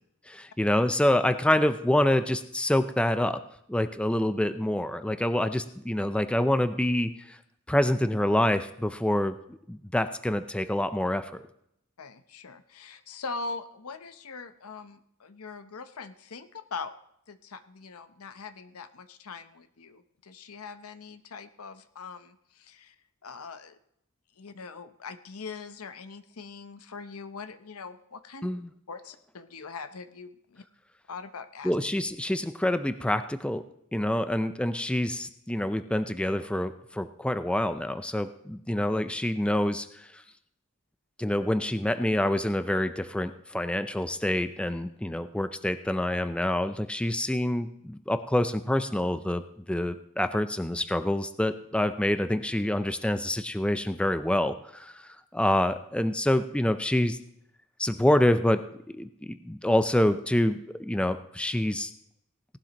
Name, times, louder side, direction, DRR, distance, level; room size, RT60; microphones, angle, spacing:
voice 1, 0.3-3.4 3.7-7.4 7.7-11.4 28.4-28.7 31.6-33.7 33.9-40.2 41.2-57.2 57.8-61.9, left 1 dB, 5° left, 11 dB, 0.4 m, -27 dB
voice 2, 12.0-16.9 17.3-23.0 23.2-23.8 24.4-28.5 28.9-30.6 31.1-31.8, left 4 dB, 80° left, 11 dB, 0.8 m, -42 dB
17.5 x 11.5 x 3.0 m, 0.72 s
head